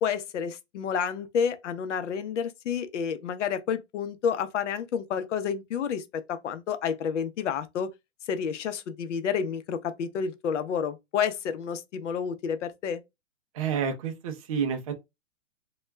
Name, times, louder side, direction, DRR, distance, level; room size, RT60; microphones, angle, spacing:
voice 1, 0.0-7.9 8.3-13.0, left 7 dB, 80° left, 0.7 m, -30 dB
voice 2, 13.6-15.0, right 7 dB, 30° right, 0.4 m, -29 dB
2.3 x 2.2 x 3.1 m
hypercardioid pair, 160°, 36 cm